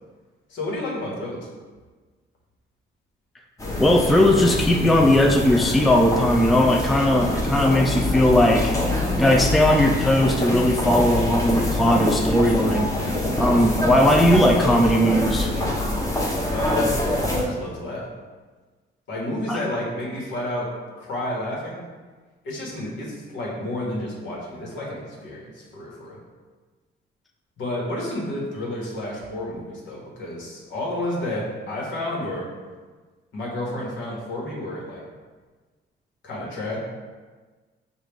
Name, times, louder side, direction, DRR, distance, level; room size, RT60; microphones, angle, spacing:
voice 1, 0.5-1.5 16.5-17.0 17.3-18.1 19.1-21.8 22.4-26.2 27.6-32.5 33.3-35.0 36.2-36.8, left 1 dB, 70° left, -3 dB, 1.4 m, -30 dB
sound 1, 3.6-17.4, left 1 dB, 15° left, 0.9 m, -25 dB
voice 2, 3.8-8.8 9.1-12.9 13.4-15.5 19.5-19.6, left 1 dB, ahead, 1 dB, 0.4 m, -18 dB
5.6 x 2.5 x 3.4 m, 1.4 s
cardioid pair, 90°, 20 cm